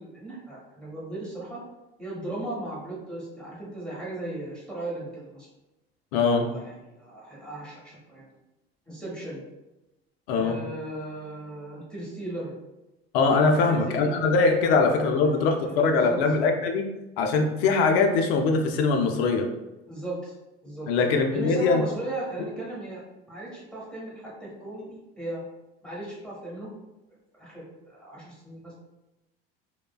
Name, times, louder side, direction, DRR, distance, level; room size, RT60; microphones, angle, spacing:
voice 1, 0.0-1.6 2.0-5.5 6.5-8.3 8.9-9.4 10.3-12.5 13.5-14.2 14.6-14.8 15.1-16.2 19.9-20.3 20.6-20.9 21.3-23.0 23.3-25.4 25.8-26.7 27.3-28.7, right 1 dB, 5° left, -7 dB, 1.1 m, -37 dB
voice 2, 6.1-6.5 10.3-10.6 13.1-16.9 17.2-19.4 20.9-21.8, left 4 dB, 75° left, 3 dB, 0.5 m, -22 dB
3.2 x 2.1 x 2.3 m, 0.98 s
hypercardioid pair, 75°, 30 cm